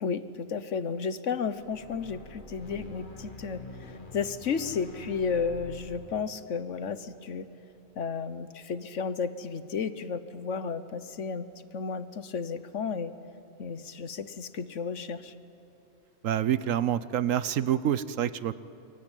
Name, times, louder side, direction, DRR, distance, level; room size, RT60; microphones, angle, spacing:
voice 1, 0.0-7.5 8.0-11.5 11.7-13.1 13.6-15.3, left 5 dB, 65° left, 13 dB, 1.3 m, -33 dB
sound 1, 1.4-7.8, left 2 dB, 40° left, 2.1 m, -47 dB
voice 2, 16.2-18.6, right 10 dB, 75° right, 15 dB, 1.2 m, -27 dB
28.0 x 23.0 x 9.1 m, 2.8 s
omnidirectional pair, 1.4 m